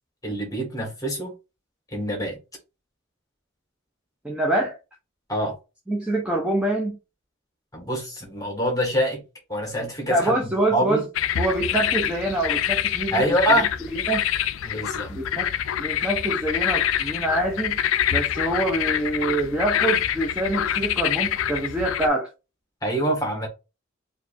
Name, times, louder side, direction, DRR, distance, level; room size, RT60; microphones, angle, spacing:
voice 1, 0.2-1.3 1.9-2.4 5.3-5.5 7.7-9.2 9.5-10.4 10.7-11.0 13.1-13.7 14.6-15.1 22.8-23.5, right 1 dB, 20° left, 1.4 m, -25 dB
voice 2, 4.2-4.8 5.9-7.0 10.1-11.0 11.4-13.6 14.1-14.2 15.1-15.5 15.8-17.8 18.1-22.3, right 1 dB, 5° right, 0.6 m, -25 dB
sound 1, 11.1-22.1, left 10 dB, 75° left, 0.4 m, -26 dB
4.6 x 2.6 x 2.4 m
head